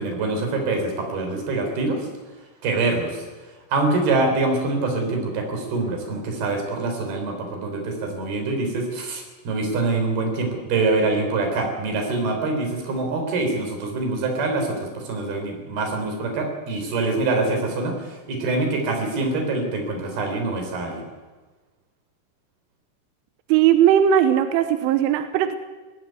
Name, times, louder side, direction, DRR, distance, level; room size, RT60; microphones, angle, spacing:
voice 1, 0.0-2.1 2.6-3.2 3.7-21.0, right 3 dB, 55° right, 3 dB, 5.6 m, -25 dB
voice 2, 23.5-25.6, right 10 dB, 90° right, 9 dB, 3.4 m, -18 dB
19.0 x 15.5 x 9.5 m, 1.3 s
omnidirectional pair, 5.6 m